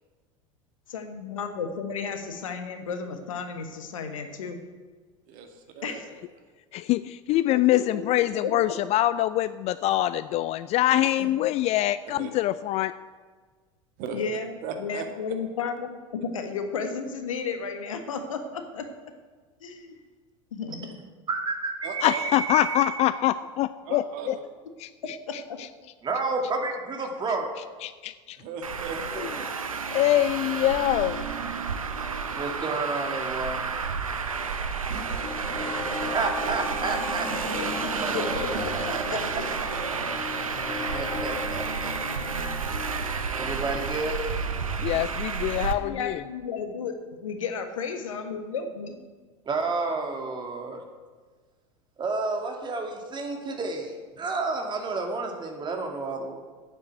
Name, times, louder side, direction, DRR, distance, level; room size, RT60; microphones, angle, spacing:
voice 1, 0.9-4.6 5.8-6.0 7.7-8.0 8.4-8.5 14.1-14.5 14.8-18.9 19.6-20.0 20.5-20.9 25.3-25.6 37.3-37.7 38.1-38.7 39.1-39.2 45.5-46.9 47.2-49.0, left 5 dB, 75° left, 6 dB, 1.5 m, -33 dB
voice 2, 5.3-6.2 11.2-11.3 12.1-12.3 14.0-15.0 21.8-22.3 23.9-24.4 28.4-29.6 34.9-36.1 36.7-38.7, right 4 dB, 50° right, 5 dB, 2.0 m, -38 dB
voice 3, 6.7-12.9 22.0-24.4 24.8-25.7 27.8-28.4 29.9-31.2 44.8-46.2, left 14 dB, 40° left, 15 dB, 0.4 m, -25 dB
voice 4, 21.3-23.0 26.0-27.5 32.3-33.6 35.9-37.7 37.9-38.6 39.1-39.2 40.9-41.9 43.3-44.9 49.5-50.8 52.0-56.3, right 3 dB, 25° right, 3 dB, 2.4 m, -30 dB
Traffic noise roadway noise, 28.6-45.7, right 5 dB, 85° right, 0.9 m, -31 dB
sound 1, 35.2-43.8, left 5 dB, 20° left, 0.8 m, -38 dB
8.9 x 7.6 x 8.9 m, 1.4 s
figure-of-eight pair, 80°, 17 cm